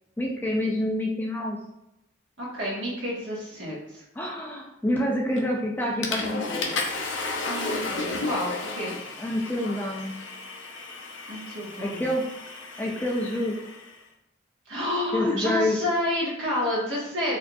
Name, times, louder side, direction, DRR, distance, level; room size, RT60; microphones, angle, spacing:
voice 1, 0.2-1.6 4.2-6.8 9.2-10.2 11.8-12.2 12.8-13.5 15.1-15.8, left 1 dB, 10° left, -2 dB, 0.3 m, -27 dB
voice 2, 2.4-4.0 7.4-8.9 11.3-12.1 14.7-17.4, left 1 dB, 70° right, -5 dB, 1.3 m, -29 dB
Water / Toilet flush, 5.4-5.6 6.0-13.9, left 3 dB, 75° left, 0.6 m, -33 dB
4.5 x 2.7 x 2.3 m, 0.87 s
head